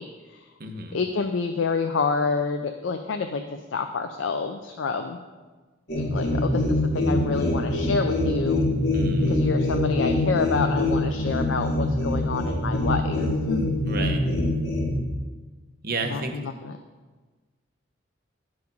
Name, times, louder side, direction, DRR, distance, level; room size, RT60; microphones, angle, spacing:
voice 1, 0.0-0.5 0.9-5.2 5.9-8.6 9.3-13.8 16.0-16.7, left 4 dB, 80° left, 6 dB, 0.5 m, -28 dB
voice 2, 0.6-1.0 8.9-9.4 13.9-14.2 15.8-16.4, right 3 dB, 50° right, 4 dB, 0.9 m, -31 dB
sound 1, 5.9-15.0, left 1 dB, 55° left, 1.7 m, -24 dB
10.5 x 4.9 x 5.3 m, 1.3 s
head